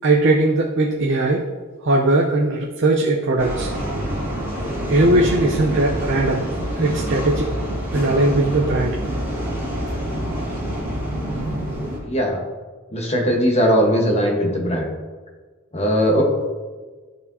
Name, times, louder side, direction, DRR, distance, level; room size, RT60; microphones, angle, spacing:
voice 1, 0.0-1.4 1.8-3.7 4.9-6.4 6.8-7.5 7.9-9.0, right 2 dB, 60° right, -2 dB, 0.7 m, -19 dB
sound 1, 3.4-12.0, equal, 10° right, 2.1 m, -26 dB
voice 2, 12.0-12.4 12.9-14.9 15.7-16.2, equal, 30° left, 0 dB, 1.3 m, -19 dB
12.5 x 4.5 x 2.8 m, 1.4 s
head